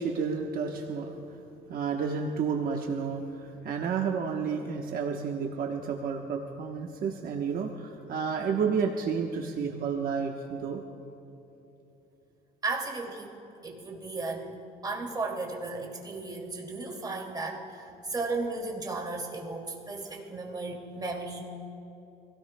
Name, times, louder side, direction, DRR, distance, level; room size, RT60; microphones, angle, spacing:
voice 1, 0.0-1.4 1.7-10.8, right 6 dB, 60° right, 1 dB, 1.1 m, -31 dB
voice 2, 12.6-14.6 14.8-21.4, right 3 dB, 25° right, 0 dB, 2.5 m, -35 dB
27.0 x 17.5 x 2.3 m, 3.0 s
cardioid pair, 110°, 17 cm